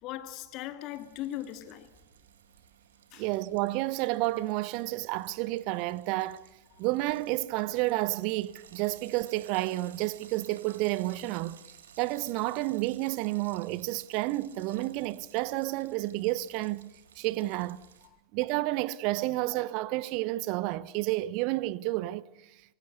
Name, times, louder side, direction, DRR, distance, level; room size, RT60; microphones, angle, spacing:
voice 1, 0.0-1.9 3.1-3.3, left 13 dB, 45° left, 2.3 m, -39 dB
Frying (food), 0.9-18.1, right 8 dB, 70° right, 2.5 m, -56 dB
voice 2, 3.2-6.4 6.8-11.6 12.0-16.9 17.2-17.8 18.3-22.3, right 18 dB, 45° right, 0.9 m, -30 dB
26.0 x 23.5 x 8.1 m
figure-of-eight pair, 90°, 0 cm